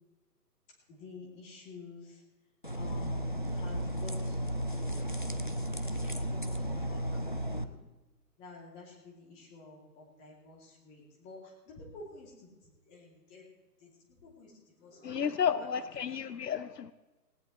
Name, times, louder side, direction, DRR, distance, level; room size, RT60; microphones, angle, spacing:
voice 1, 0.9-2.2 2.7-5.1 5.9-7.8 8.4-11.4 11.7-12.5 12.9-13.4 13.8-13.9 14.2-14.5 14.8-15.3 16.1-16.2, left 3 dB, 15° left, -2 dB, 2.6 m, -50 dB
sound 1, 2.6-7.6, equal, 35° left, 0.4 m, -34 dB
voice 2, 15.0-16.9, left 7 dB, 75° left, 14 dB, 0.8 m, -32 dB
19.0 x 18.0 x 3.1 m, 1.2 s
hypercardioid pair, 155°, 50 cm